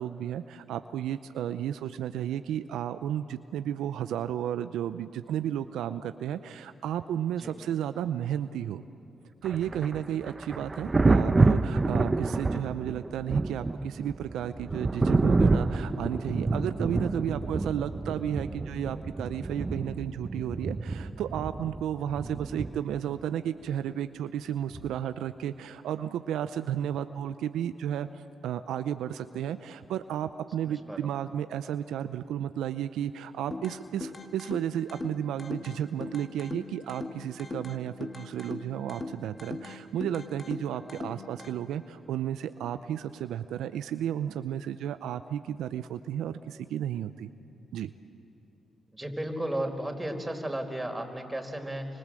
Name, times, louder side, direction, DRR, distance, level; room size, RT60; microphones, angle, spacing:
voice 1, 0.0-8.8 9.4-47.3 47.7-47.9, right 10 dB, 80° right, 11 dB, 0.6 m, -33 dB
Thunder, 9.4-23.1 24.7-25.0, right 3 dB, 30° right, 1.1 m, -28 dB
voice 2, 30.6-31.1 48.9-51.9, right 1 dB, 15° right, 4 dB, 4.7 m, -34 dB
sound 1, 33.5-41.5, left 3 dB, 35° left, 2.3 m, -41 dB
28.5 x 25.5 x 7.7 m, 2.7 s
supercardioid pair, 50°, 0 cm